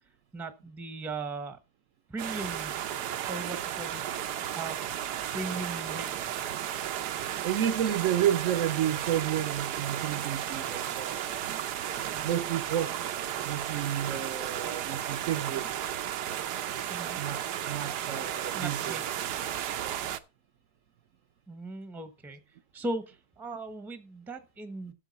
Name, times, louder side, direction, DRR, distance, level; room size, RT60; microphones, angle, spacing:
voice 1, 0.3-1.6 2.1-2.8 3.3-4.1 4.5-4.8 5.3-6.5 16.9-17.2 18.5-19.1 21.5-22.4 22.7-24.9, right 2 dB, ahead, 0.7 m, -38 dB
sound 1, 2.2-20.2, right 10 dB, 85° right, 1.3 m, -34 dB
voice 2, 7.4-11.6 12.2-13.0 13.4-15.9 17.2-19.0 19.8-20.1, right 10 dB, 60° right, 0.9 m, -31 dB
13.0 x 7.6 x 4.1 m
omnidirectional pair, 1.7 m